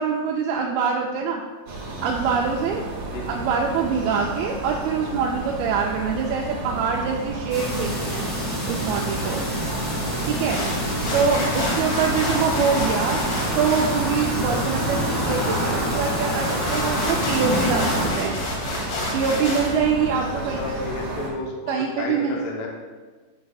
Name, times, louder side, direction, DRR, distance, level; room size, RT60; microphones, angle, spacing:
voice 1, 0.0-1.4 2.0-2.8 3.3-8.3 8.7-9.4 10.3-10.7 11.1-13.2 13.5-18.4 19.1-20.8 21.7-22.4, right 6 dB, 85° right, 0 dB, 2.3 m, -24 dB
sound 1, 1.7-21.3, right 2 dB, 60° right, 1.8 m, -32 dB
sound 2, 7.5-18.1, equal, 25° left, 0.8 m, -26 dB
sound 3, 10.2-19.8, left 2 dB, 55° left, 1.7 m, -31 dB
voice 2, 20.4-22.7, left 3 dB, 75° left, -2 dB, 2.4 m, -32 dB
9.2 x 5.2 x 2.3 m, 1.3 s
omnidirectional pair, 4.4 m